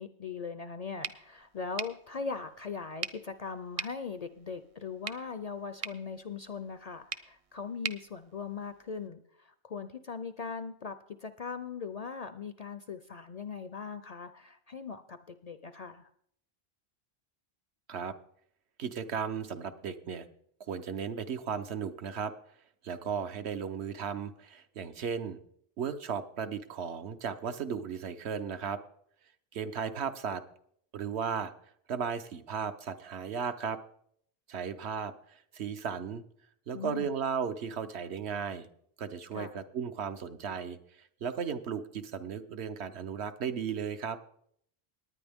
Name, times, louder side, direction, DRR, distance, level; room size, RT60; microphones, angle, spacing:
voice 1, 0.0-16.1 36.7-37.1 39.3-39.6, left 5 dB, 50° left, 11 dB, 0.5 m, -40 dB
sound 1, 1.0-9.1, right 6 dB, 45° right, 0.4 m, -44 dB
voice 2, 18.8-20.2 20.7-22.3 22.8-25.4 25.8-28.8 29.5-30.4 30.9-31.5 31.9-33.8 34.5-36.2 36.7-38.7 39.0-44.2, right 7 dB, 75° right, 9 dB, 1.1 m, -35 dB
19.0 x 9.4 x 3.5 m, 0.68 s
omnidirectional pair, 1.1 m